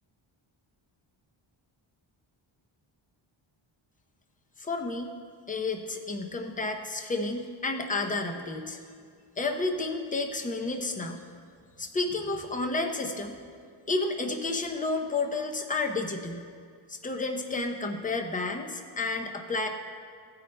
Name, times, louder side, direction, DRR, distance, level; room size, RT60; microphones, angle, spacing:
voice 1, 4.6-5.1 5.5-8.8 9.4-11.2 11.8-13.4 13.9-16.5 16.9-19.7, left 3 dB, 15° left, 3 dB, 0.6 m, -31 dB
15.5 x 9.4 x 2.2 m, 2.1 s
wide cardioid pair, 145°, 48 cm